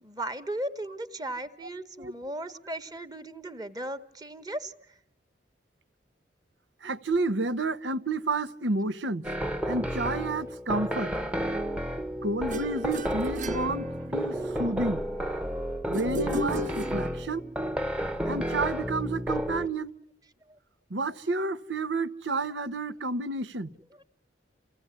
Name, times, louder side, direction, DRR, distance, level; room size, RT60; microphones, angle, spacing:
voice 1, 0.0-4.7 15.5-15.6 17.2-17.3 23.9-24.0, right 1 dB, 20° right, 1.2 m, -36 dB
voice 2, 6.8-9.2 9.7-11.1 12.2-15.0 15.9-17.4 18.3-19.9 20.9-23.7, right 2 dB, 90° right, 1.0 m, -30 dB
sound 1, 9.2-19.7, equal, 5° right, 0.9 m, -31 dB
sound 2, 12.5-14.5 15.9-17.5, equal, 45° right, 1.0 m, -34 dB
29.0 x 16.5 x 9.7 m
head